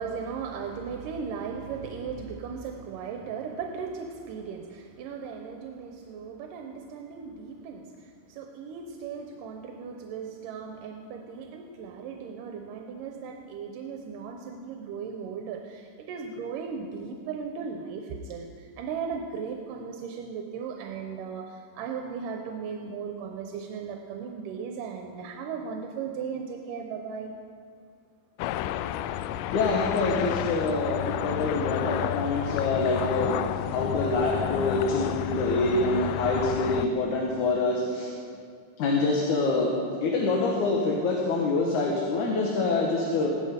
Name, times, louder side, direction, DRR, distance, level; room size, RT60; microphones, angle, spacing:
voice 1, 0.0-27.3, right 6 dB, 85° right, 3 dB, 2.4 m, -37 dB
sound 1, 28.4-36.9, left 12 dB, 85° left, 2.1 m, -31 dB
voice 2, 29.5-33.4 33.7-38.1 38.8-43.3, left 3 dB, 70° left, -1 dB, 2.6 m, -26 dB
16.0 x 12.5 x 5.1 m, 2.2 s
omnidirectional pair, 3.9 m